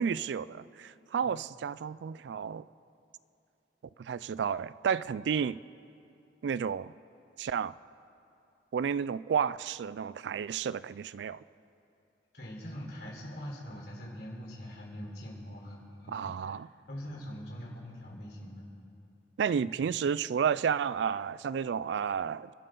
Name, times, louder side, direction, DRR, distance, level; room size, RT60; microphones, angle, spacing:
voice 1, 0.0-2.6 4.0-5.6 6.4-6.9 7.4-7.8 8.7-11.4 16.1-16.7 19.4-22.5, right 7 dB, 75° right, 18 dB, 0.3 m, -31 dB
voice 2, 12.3-16.6 16.9-18.7 19.6-19.7, equal, 60° left, -3 dB, 3.8 m, -43 dB
29.0 x 12.5 x 3.8 m, 2.7 s
head